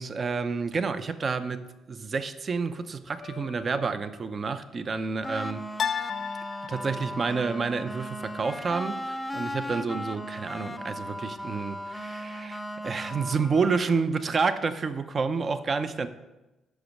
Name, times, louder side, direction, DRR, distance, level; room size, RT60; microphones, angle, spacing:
voice 1, 0.0-5.7 6.7-16.1, right 4 dB, 40° right, 11 dB, 0.6 m, -29 dB
sound 1, 3.2-3.9 5.8-7.3, left 8 dB, 55° left, 0.4 m, -34 dB
sound 2, 5.2-14.0, equal, 10° left, 0.6 m, -37 dB
8.2 x 6.2 x 6.5 m, 1.0 s
cardioid pair, 90°, 0 cm